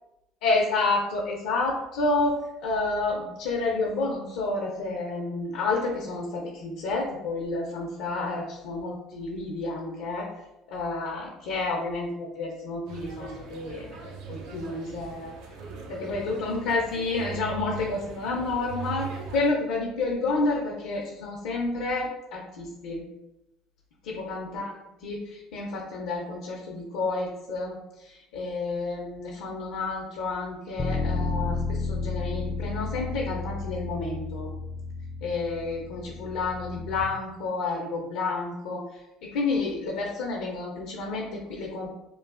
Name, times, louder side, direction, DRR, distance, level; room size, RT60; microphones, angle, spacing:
voice 1, 0.4-10.3 10.7-15.3 15.9-23.0 24.1-34.5 35.2-41.9, left 3 dB, 80° left, -2 dB, 0.5 m, -30 dB
sound 1, 12.9-19.5, right 5 dB, 75° right, 0.4 m, -40 dB
Bass guitar, 30.8-37.0, left 3 dB, 20° left, 0.3 m, -32 dB
3.0 x 2.0 x 2.4 m, 0.90 s
supercardioid pair, 90°, 0 cm